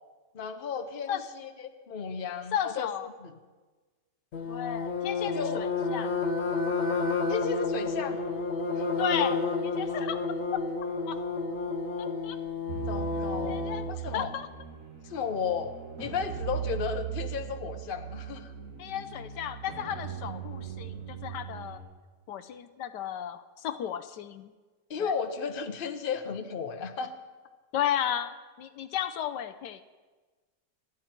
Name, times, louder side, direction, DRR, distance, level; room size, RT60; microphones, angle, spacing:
voice 1, 0.3-2.9 3.2-3.3 5.3-5.6 7.3-8.2 8.8-8.9 12.9-14.3 15.0-18.5 24.9-27.1, left 6 dB, 35° left, 7 dB, 1.0 m, -34 dB
voice 2, 2.5-3.1 4.5-6.1 9.0-10.2 11.1-11.2 12.0-12.4 13.5-14.5 18.8-21.8 22.3-24.5 25.0-25.1 27.7-29.8, left 10 dB, 80° left, 11 dB, 1.3 m, -34 dB
sound 1, 4.3-13.9, left 4 dB, 55° left, 1.4 m, -30 dB
sound 2, 12.7-21.8, right 9 dB, 50° right, 2.5 m, -39 dB
28.0 x 10.0 x 4.5 m, 1.3 s
omnidirectional pair, 1.8 m